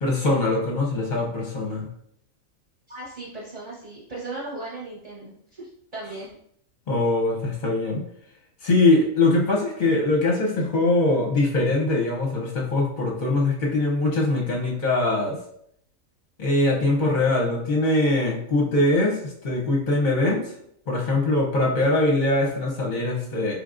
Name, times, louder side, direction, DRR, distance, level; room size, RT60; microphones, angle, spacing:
voice 1, 0.0-1.9 6.9-8.0 8.6-15.4 16.4-20.5 20.9-23.5, left 2 dB, 45° left, -1 dB, 0.7 m, -22 dB
voice 2, 2.9-6.3, right 2 dB, 30° right, -6 dB, 0.9 m, -37 dB
5.1 x 3.4 x 2.5 m, 0.70 s
omnidirectional pair, 1.4 m